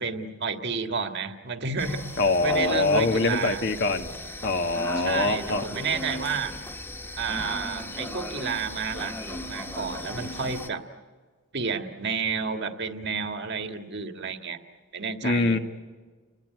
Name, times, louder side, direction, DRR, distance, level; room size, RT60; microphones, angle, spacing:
voice 1, 0.0-2.0 2.4-3.6 4.9-6.5 7.2-10.8 11.5-14.6 14.9-15.6, right 5 dB, 50° right, 6 dB, 1.7 m, -31 dB
sound 1, 1.8-10.7, left 1 dB, 10° left, 1.5 m, -36 dB
voice 2, 2.2-4.1 4.4-5.6 15.2-15.6, left 3 dB, 50° left, 6 dB, 1.7 m, -24 dB
30.0 x 20.5 x 9.4 m, 1.5 s
head